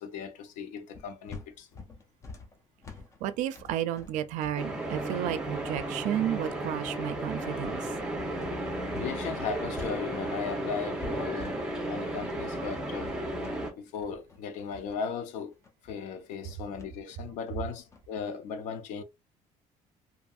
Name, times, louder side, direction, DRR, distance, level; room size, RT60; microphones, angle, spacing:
voice 1, 0.0-1.8 9.0-11.6 11.9-13.2 13.8-15.6 15.8-19.0, left 6 dB, 85° left, 0.5 m, -37 dB
sound 1, 0.9-9.2 9.5-18.2, left 4 dB, 25° left, 0.5 m, -48 dB
voice 2, 3.2-7.9, right 11 dB, 75° right, 0.4 m, -32 dB
sound 2, 4.6-13.7, right 1 dB, 5° right, 0.7 m, -34 dB
2.6 x 2.6 x 2.3 m
cardioid pair, 155°, 13 cm